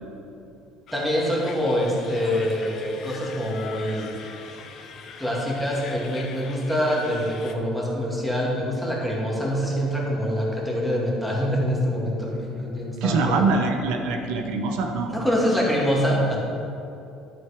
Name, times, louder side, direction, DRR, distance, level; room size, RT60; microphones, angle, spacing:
sound 1, 0.9-7.5, left 6 dB, 50° left, 0.8 m, -42 dB
voice 1, 0.9-4.1 5.2-13.5 15.1-16.4, equal, ahead, -4 dB, 2.1 m, -25 dB
voice 2, 13.0-15.1, right 3 dB, 80° right, 4 dB, 0.8 m, -24 dB
11.0 x 6.2 x 5.0 m, 2.8 s
cardioid pair, 120°, 0 cm